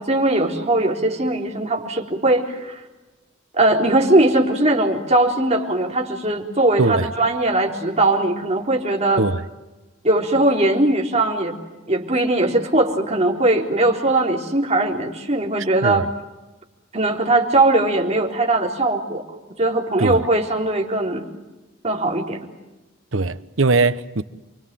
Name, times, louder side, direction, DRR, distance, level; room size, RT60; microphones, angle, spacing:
voice 1, 0.0-2.8 3.5-9.2 10.0-11.6 11.9-16.0 16.9-19.2 19.6-21.2 21.8-22.4, right 2 dB, 35° right, 3.9 m, -20 dB
voice 2, 6.8-7.1 9.2-9.4 15.8-16.1 20.0-20.3 23.1-24.2, right 3 dB, 85° right, 1.1 m, -20 dB
29.0 x 24.0 x 7.6 m
head